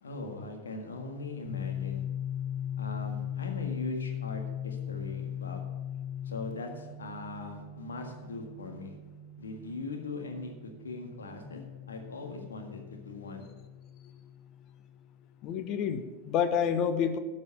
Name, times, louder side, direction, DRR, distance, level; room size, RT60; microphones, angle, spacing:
voice 1, 0.0-2.0 2.8-5.6 6.3-8.9 9.4-10.5 10.8-13.5, left 3 dB, 70° left, 3 dB, 1.9 m, -40 dB
sound 1, 1.5-15.1, left 8 dB, 20° right, 2.3 m, -39 dB
voice 2, 15.4-17.2, left 7 dB, 35° left, 10 dB, 0.9 m, -28 dB
12.0 x 5.4 x 8.0 m, 1.3 s
figure-of-eight pair, 90°, 0 cm